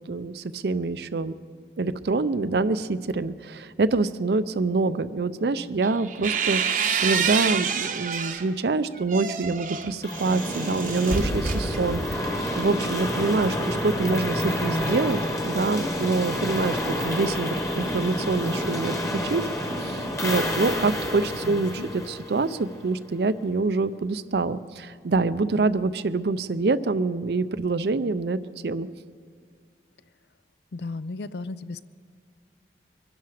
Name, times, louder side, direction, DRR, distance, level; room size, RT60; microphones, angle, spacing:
voice 1, 0.1-1.4 1.8-15.2 15.4-28.9, right 3 dB, 65° right, 14 dB, 0.5 m, -26 dB
sound 1, 5.8-8.5 8.9-12.3, right 6 dB, 45° right, 0.8 m, -28 dB
sound 2, 10.0-22.9, left 1 dB, 15° left, 1.2 m, -29 dB
voice 2, 21.4-21.9 30.7-31.8, left 3 dB, 70° left, 15 dB, 0.5 m, -35 dB
23.5 x 11.5 x 4.9 m, 2.1 s
head